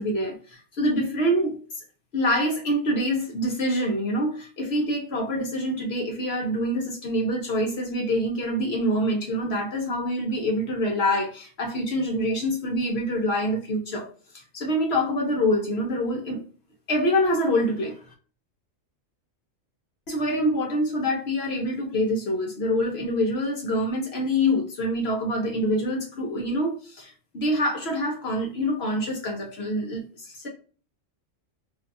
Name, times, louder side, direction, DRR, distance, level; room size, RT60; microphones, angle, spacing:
voice 1, 0.0-1.6 2.1-14.1 14.3-16.4 16.9-18.0 20.1-30.5, equal, 60° left, 0.9 m, -26 dB
2.6 x 2.3 x 2.5 m
omnidirectional pair, 1.3 m